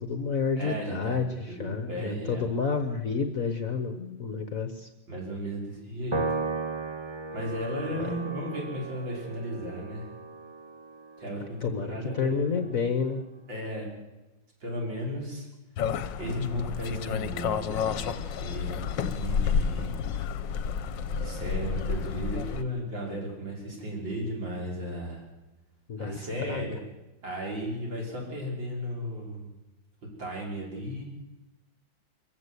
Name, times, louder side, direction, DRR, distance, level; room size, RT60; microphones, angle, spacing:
voice 1, 0.0-4.9 7.9-8.1 11.6-13.2 25.9-26.7, left 5 dB, 50° left, 8 dB, 1.4 m, -30 dB
voice 2, 0.6-1.2 1.5-2.4 5.1-6.2 7.3-10.1 11.2-12.6 13.5-13.9 14.6-15.5 16.2-19.9 21.1-25.2 26.0-26.8 27.2-29.5 30.2-31.0, equal, 65° right, -1 dB, 6.2 m, -35 dB
Piano, 6.1-12.7, right 3 dB, 40° right, 0.4 m, -36 dB
sound 1, 15.8-22.6, left 6 dB, 70° left, 1.6 m, -30 dB
24.5 x 15.0 x 8.3 m, 1.0 s
omnidirectional pair, 2.2 m